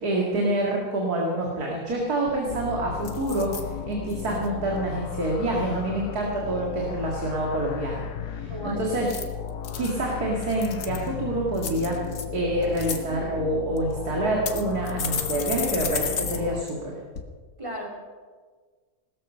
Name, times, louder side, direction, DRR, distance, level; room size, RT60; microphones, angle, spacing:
voice 1, 0.0-3.5 3.8-9.1 9.8-12.0 12.3-16.9, right 1 dB, 85° right, -2 dB, 2.7 m, -27 dB
sound 1, 1.9-2.0 2.3-2.6 3.0-3.6 4.1-4.5 8.9-9.9 10.4-11.1 11.6-12.2 12.6-13.0 13.8-13.9 14.5-16.4 16.7-16.8 17.1-17.2, left 6 dB, 65° left, 1.6 m, -32 dB
sound 2, 2.5-16.6, left 8 dB, 90° left, 1.3 m, -35 dB
voice 2, 8.5-8.8 17.6-17.9, right 1 dB, 20° right, -1 dB, 3.0 m, -34 dB
18.0 x 13.5 x 5.5 m, 1.5 s
omnidirectional pair, 1.6 m